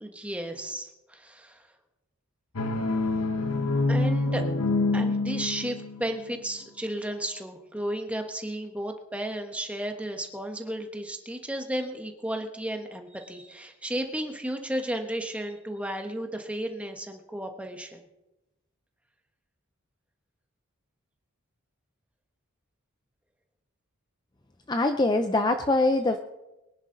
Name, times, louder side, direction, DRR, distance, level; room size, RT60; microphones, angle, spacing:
voice 1, 0.0-1.7 3.9-4.4 4.9-18.1, right 1 dB, 5° right, 4 dB, 1.2 m, -33 dB
sound 1, 2.6-6.2, left 2 dB, 85° left, 1.1 m, -26 dB
voice 2, 24.7-26.2, left 2 dB, 20° left, 7 dB, 0.5 m, -23 dB
23.0 x 10.5 x 3.9 m, 0.99 s
head